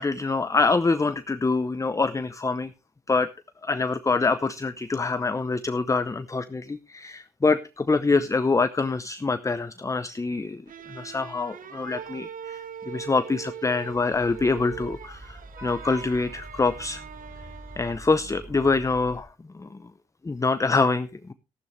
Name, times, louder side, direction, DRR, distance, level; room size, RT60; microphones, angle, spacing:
voice 1, 0.0-2.7 3.1-3.3 3.6-10.6 10.9-17.0 17.8-19.3 19.5-19.8 20.2-21.3, left 3 dB, 20° left, 12 dB, 0.7 m, -25 dB
sound 1, 10.7-18.2, right 8 dB, 55° right, 0.9 m, -42 dB
Vehicle horn car horn honking / Traffic noise roadway noise, 13.9-19.2, right 1 dB, 15° right, 4.2 m, -43 dB
14.0 x 12.0 x 3.2 m, 0.28 s
cardioid pair, 70°, 16 cm